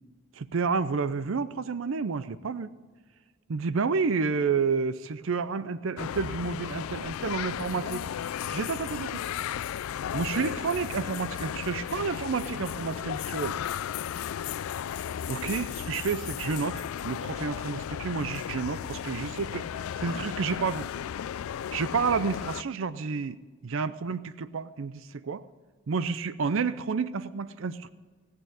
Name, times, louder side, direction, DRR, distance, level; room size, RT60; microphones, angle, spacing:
voice 1, 0.3-2.7 3.5-8.0 8.5-9.2 10.1-13.6 15.3-20.9 21.7-23.4 23.6-25.4 25.9-27.9, right 5 dB, 70° right, 14 dB, 0.5 m, -30 dB
sound 1, 6.0-22.6, left 9 dB, 85° left, 0.3 m, -35 dB
18.0 x 6.7 x 9.1 m, 1.4 s
head